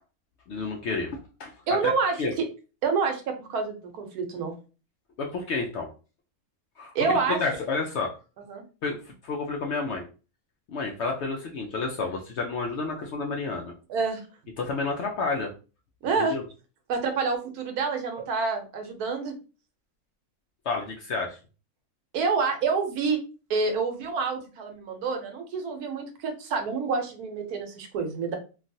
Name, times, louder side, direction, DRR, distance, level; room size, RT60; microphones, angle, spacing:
voice 1, 0.5-1.5 1.8-1.9 2.2-2.3 5.2-5.9 6.8-6.9 7.3-8.1 8.8-10.0 10.7-13.7 14.6-15.5 16.2-16.4 20.7-21.4, left 4 dB, 70° left, 1 dB, 0.7 m, -30 dB
voice 2, 1.7-2.5 2.8-4.6 6.9-7.4 8.5-8.6 13.9-14.2 16.0-16.3 16.9-19.3 22.1-23.2 23.5-28.4, right 4 dB, 85° right, 5 dB, 1.2 m, -27 dB
3.1 x 2.3 x 2.6 m, 0.34 s
omnidirectional pair, 1.6 m